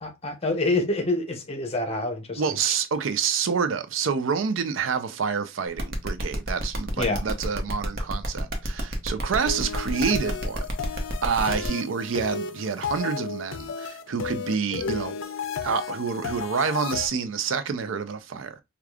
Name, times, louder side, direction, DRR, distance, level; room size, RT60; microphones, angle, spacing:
voice 1, 0.0-2.4 7.0-7.2, left 2 dB, 30° left, 0.8 m, -26 dB
voice 2, 2.4-10.7 10.9-15.1 15.6-18.6, right 6 dB, 85° right, 0.5 m, -28 dB
sound 1, 5.8-11.7, right 1 dB, 50° right, 0.9 m, -32 dB
sound 2, 9.5-17.1, left 6 dB, 75° left, 0.4 m, -33 dB
4.8 x 2.3 x 2.3 m
head